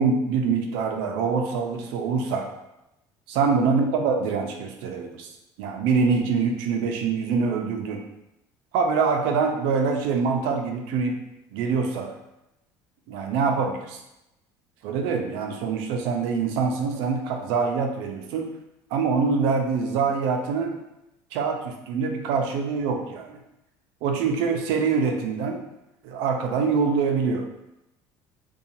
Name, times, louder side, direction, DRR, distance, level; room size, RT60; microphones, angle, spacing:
voice 1, 0.0-2.5 3.3-5.3 5.6-8.0 8.7-11.2 11.5-12.1 13.1-14.0 14.8-18.5 18.9-20.8 21.3-23.4 24.0-25.7 26.0-27.4, right 5 dB, 80° right, 3 dB, 0.5 m, -24 dB
2.6 x 2.3 x 2.8 m, 0.89 s
cardioid pair, 150°, 9 cm